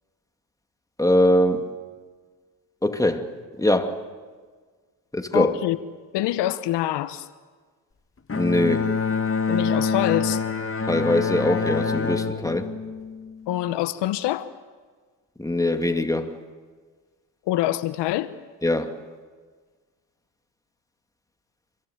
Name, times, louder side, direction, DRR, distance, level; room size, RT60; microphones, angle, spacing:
voice 1, 1.0-1.7 2.8-4.0 5.1-5.5 8.4-9.0 10.9-12.7 15.4-16.4 18.6-18.9, left 1 dB, 10° left, 2.6 m, -22 dB
voice 2, 5.3-5.8 6.1-7.3 9.5-10.4 13.5-14.5 17.5-18.3, left 14 dB, 85° left, 1.1 m, -25 dB
Bowed string instrument, 8.3-13.7, left 5 dB, 30° left, 2.0 m, -26 dB
27.0 x 22.5 x 8.7 m
supercardioid pair, 70°, 41 cm